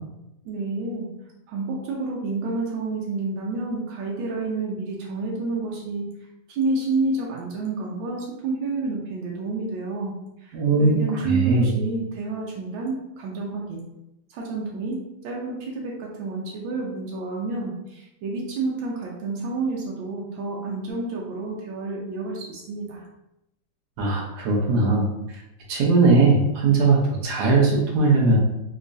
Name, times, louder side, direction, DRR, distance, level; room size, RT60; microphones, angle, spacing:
voice 1, 0.4-1.1 1.5-6.2 6.5-13.8 14.3-23.0, right 3 dB, 85° right, -2 dB, 1.4 m, -29 dB
voice 2, 10.5-11.7 24.0-25.1 25.7-28.4, right 3 dB, 65° right, -2 dB, 1.3 m, -19 dB
3.5 x 3.0 x 2.5 m, 0.88 s
omnidirectional pair, 2.0 m